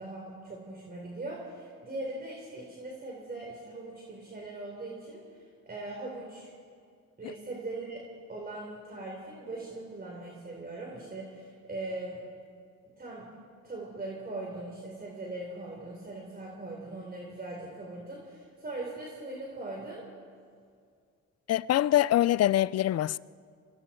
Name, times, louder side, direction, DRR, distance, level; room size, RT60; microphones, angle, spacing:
voice 1, 0.0-6.5 7.2-12.2 13.0-13.3 13.6-20.0, right 2 dB, 30° right, 4.4 m, -40 dB
voice 2, 21.5-23.2, left 13 dB, 55° left, 0.5 m, -24 dB
28.0 x 24.5 x 4.6 m
cardioid pair, 90°, 30 cm